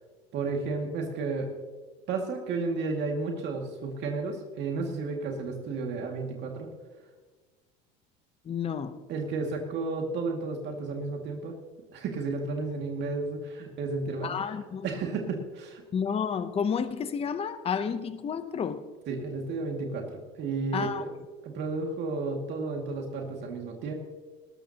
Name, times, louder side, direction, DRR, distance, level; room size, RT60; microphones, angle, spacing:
voice 1, 0.3-1.5 2.1-6.7 9.1-11.5 11.9-14.4 14.8-15.8 19.1-21.1 21.4-23.9, right 3 dB, 55° right, 1 dB, 2.2 m, -32 dB
voice 2, 8.4-9.0 14.2-14.9 15.9-18.8 20.7-21.1, left 7 dB, 30° left, 11 dB, 0.8 m, -30 dB
19.5 x 13.0 x 2.9 m, 1.4 s
supercardioid pair, 110°, 21 cm